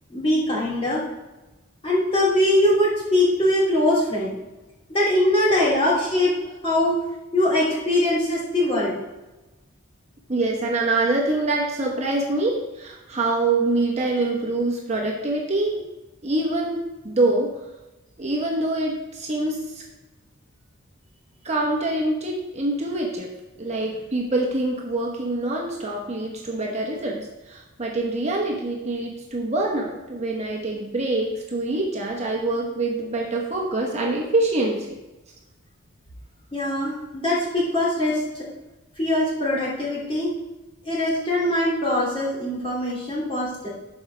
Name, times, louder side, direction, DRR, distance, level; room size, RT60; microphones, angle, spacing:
voice 1, 0.1-1.0 1.8-4.3 4.9-6.3 6.6-6.9 7.3-9.0 36.5-38.4 39.0-40.3 40.8-43.7, left 1 dB, 25° left, -7 dB, 2.9 m, -22 dB
voice 2, 10.3-15.8 16.2-17.5 18.2-19.8 21.4-23.3 23.6-35.0, right 2 dB, 30° right, -1 dB, 1.0 m, -25 dB
12.0 x 4.9 x 3.4 m, 1.1 s
head